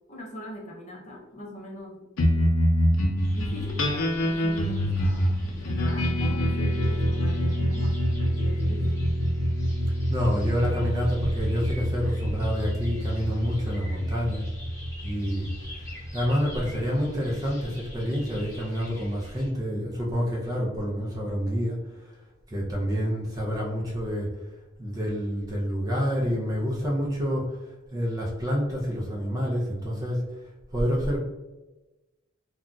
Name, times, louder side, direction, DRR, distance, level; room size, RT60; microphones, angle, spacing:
voice 1, 0.1-2.5 3.3-8.9, left 1 dB, 35° left, -2 dB, 0.6 m, -42 dB
sound 1, 2.2-16.9, equal, 85° left, 0.5 m, -26 dB
sound 2, 3.2-19.5, equal, 15° left, 1.0 m, -45 dB
voice 2, 10.1-14.4 15.0-21.8 22.1-22.2 22.5-24.3 24.8-27.6 27.9-30.2 30.7-31.2, equal, 15° right, -3 dB, 0.4 m, -28 dB
2.4 x 2.2 x 3.7 m, 1.1 s
head